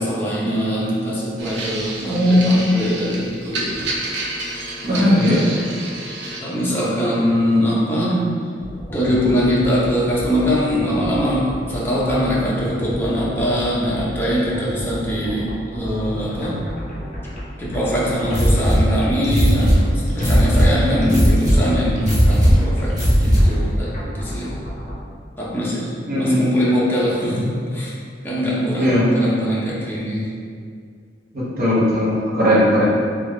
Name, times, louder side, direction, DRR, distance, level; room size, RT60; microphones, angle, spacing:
voice 1, 0.0-3.8 4.8-5.5 6.4-8.3 8.9-16.6 17.6-24.6 25.4-27.9 28.2-30.4, equal, 10° left, -7 dB, 0.7 m, -22 dB
sound 1, 1.4-6.4, right 2 dB, 80° right, 0.5 m, -30 dB
voice 2, 2.0-2.7 4.9-5.4 20.9-21.3 26.1-26.5 28.8-29.0 31.3-32.8, equal, 55° right, -7 dB, 0.9 m, -18 dB
sound 2, 8.6-24.9, equal, 40° left, 0.8 m, -32 dB
sound 3, 18.3-23.7, equal, 20° right, 1.0 m, -17 dB
3.7 x 2.4 x 3.2 m, 2.2 s
head